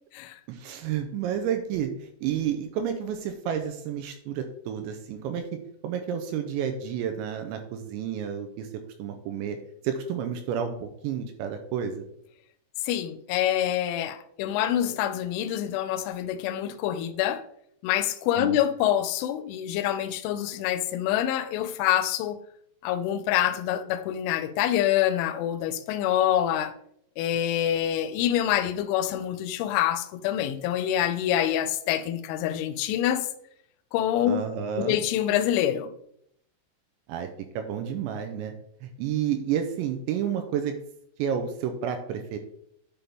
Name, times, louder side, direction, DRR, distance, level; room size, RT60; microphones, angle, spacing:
voice 1, 0.5-5.4 5.8-8.7 9.0-9.6 9.8-12.1 18.4-18.6 34.3-35.0 37.1-37.3 37.6-38.5 38.8-40.7 41.2-42.4, right 8 dB, 85° right, 2.7 m, -30 dB
voice 2, 12.8-17.5 17.8-22.4 22.8-26.7 27.2-33.3 33.9-34.4 34.8-35.9, left 11 dB, 85° left, 2.9 m, -26 dB
10.0 x 5.3 x 3.5 m
omnidirectional pair, 5.8 m